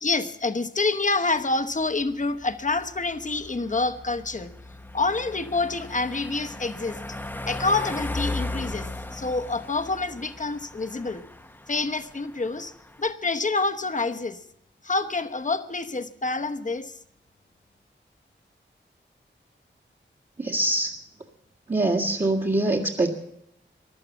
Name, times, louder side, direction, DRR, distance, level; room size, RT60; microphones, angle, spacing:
voice 1, 0.0-4.5 4.9-7.0 7.4-11.2 11.7-12.7 13.0-14.4 14.8-16.9, left 3 dB, 40° left, 9 dB, 1.0 m, -27 dB
sound 1, 1.4-13.1, left 2 dB, 10° left, 0.7 m, -37 dB
voice 2, 20.4-20.9 21.7-23.1, right 2 dB, 35° right, -3 dB, 1.7 m, -23 dB
15.5 x 11.5 x 7.1 m, 0.77 s
cardioid pair, 55°, 20 cm